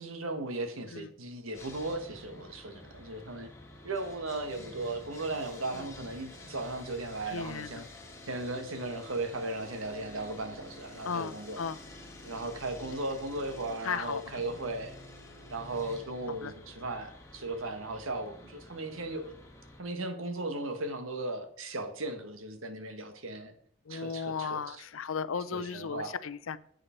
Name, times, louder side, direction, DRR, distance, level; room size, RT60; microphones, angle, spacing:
voice 1, 0.0-3.5 3.8-7.8 8.2-11.6 12.2-15.0 15.5-19.4 19.8-23.5 23.9-24.8 25.5-26.2, right 2 dB, 80° right, 7 dB, 1.4 m, -37 dB
Sawing, 1.5-19.8, left 1 dB, 15° left, 1.6 m, -49 dB
voice 2, 7.3-7.9 11.0-11.8 13.8-14.6 16.4-16.5 23.9-26.6, left 6 dB, 80° left, 16 dB, 0.5 m, -36 dB
10.0 x 8.0 x 4.4 m, 0.63 s
head